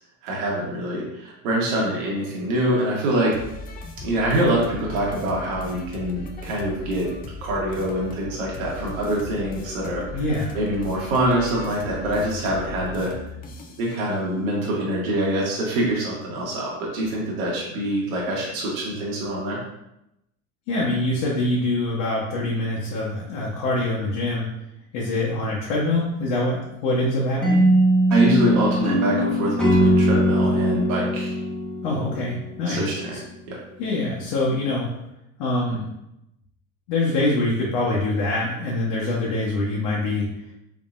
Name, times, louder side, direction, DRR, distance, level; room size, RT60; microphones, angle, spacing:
voice 1, 0.2-3.4 4.0-7.1 7.4-10.2 10.5-13.1 13.8-19.6 28.1-31.4 32.7-33.2 33.5-33.6, right 1 dB, 70° right, -4 dB, 1.4 m, -25 dB
sound 1, 3.3-13.9, left 2 dB, 20° left, 0.5 m, -38 dB
voice 2, 10.1-10.6 20.7-24.5 24.9-27.6 31.8-33.2 33.8-34.9 35.4-35.9 36.9-40.3, left 2 dB, 65° left, -5 dB, 1.2 m, -24 dB
sound 2, 27.4-32.5, equal, ahead, 0.9 m, -20 dB
3.7 x 3.7 x 2.5 m, 0.85 s
supercardioid pair, 105°, 42 cm